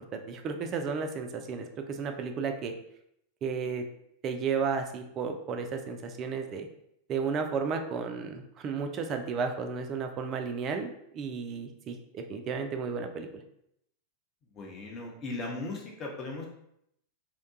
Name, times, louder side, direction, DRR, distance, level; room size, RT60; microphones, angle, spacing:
voice 1, 0.0-2.7 3.4-3.8 4.2-6.7 7.1-13.4, right 5 dB, 30° right, 6 dB, 0.3 m, -33 dB
voice 2, 14.5-16.5, left 2 dB, 30° left, -1 dB, 0.7 m, -37 dB
2.8 x 2.2 x 2.5 m, 0.76 s
figure-of-eight pair, 90°, 0 cm